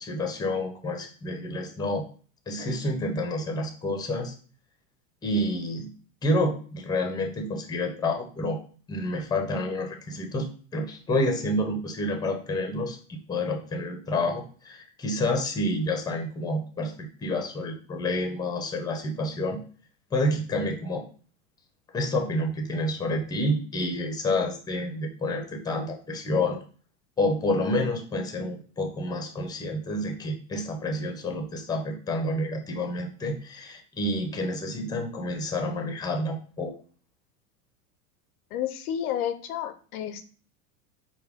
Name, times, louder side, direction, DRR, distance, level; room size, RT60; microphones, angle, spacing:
voice 1, 0.0-2.1 2.5-4.3 5.2-5.9 6.2-8.6 8.9-19.6 20.1-21.0 21.9-26.6 27.2-36.7, left 1 dB, 10° left, 4 dB, 0.6 m, -29 dB
voice 2, 38.5-40.3, left 10 dB, 85° left, 10 dB, 0.6 m, -31 dB
4.5 x 2.2 x 3.5 m, 0.41 s
supercardioid pair, 115°, 43 cm